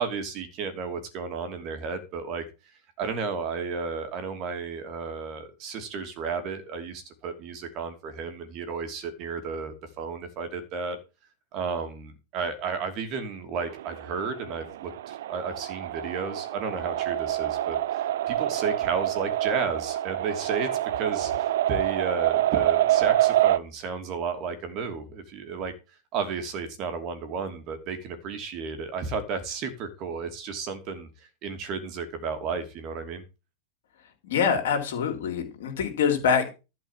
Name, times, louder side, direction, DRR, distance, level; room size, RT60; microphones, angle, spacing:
voice 1, 0.0-2.4 3.0-11.0 11.5-20.7 21.0-25.7 26.1-33.2, right 5 dB, 40° right, 2.8 m, -33 dB
sound 1, 13.6-23.6, right 13 dB, 60° right, 0.5 m, -26 dB
voice 2, 34.2-36.5, left 6 dB, 60° left, 3.4 m, -25 dB
12.0 x 5.5 x 7.4 m
figure-of-eight pair, 95°, 0 cm